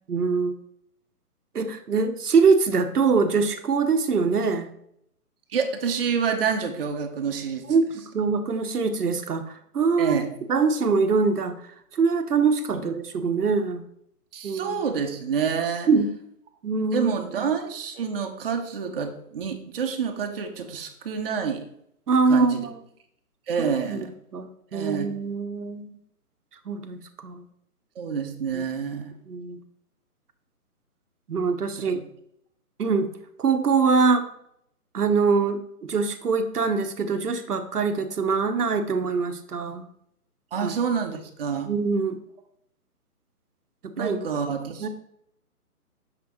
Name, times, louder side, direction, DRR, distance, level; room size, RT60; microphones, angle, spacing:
voice 1, 0.1-0.5 1.5-4.7 7.7-7.9 8.1-10.2 10.5-11.5 11.9-13.8 14.4-14.8 15.9-16.1 16.6-17.5 22.1-22.7 23.6-25.9 26.7-27.4 28.5-28.6 29.3-29.6 31.3-32.0 32.8-33.1 33.4-34.3 34.9-39.9 40.6-40.7 41.7-42.2 44.0-44.2 44.8-44.9, right 4 dB, 75° right, 8 dB, 1.0 m, -23 dB
voice 2, 5.5-7.6 10.0-10.3 14.3-15.9 16.9-21.6 22.3-22.6 23.5-24.1 24.7-25.1 28.0-29.1 31.9-32.0 40.5-41.7 44.0-44.9, right 6 dB, 40° right, 5 dB, 0.9 m, -28 dB
6.7 x 6.5 x 3.0 m, 0.72 s
figure-of-eight pair, 145°, 46 cm